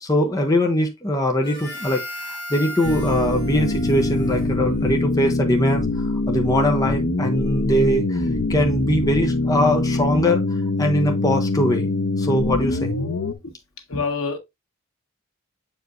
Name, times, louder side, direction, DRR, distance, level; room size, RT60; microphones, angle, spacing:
voice 1, 0.0-10.4 10.8-11.9 12.2-12.9, equal, 15° left, 0.8 m, -22 dB
Harmonica, 1.4-5.2, left 1 dB, 45° left, 3.1 m, -36 dB
sound 1, 2.8-13.3, left 2 dB, 70° left, 0.9 m, -23 dB
voice 2, 13.9-14.4, left 4 dB, 90° left, 1.5 m, -26 dB
7.7 x 4.8 x 2.6 m
head